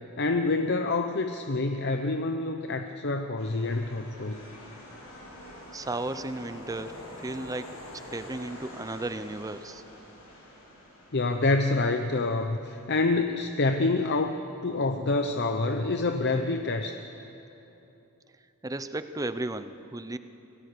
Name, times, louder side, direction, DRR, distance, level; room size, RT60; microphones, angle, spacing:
voice 1, 0.2-4.4 11.1-14.3 14.6-17.0, left 3 dB, 50° left, 6 dB, 0.8 m, -27 dB
sound 1, 3.4-14.8, left 1 dB, 85° left, 7.2 m, -47 dB
voice 2, 5.7-7.7 8.1-9.8 18.6-20.2, right 2 dB, 15° right, 11 dB, 0.6 m, -34 dB
26.5 x 17.5 x 6.8 m, 3.0 s
head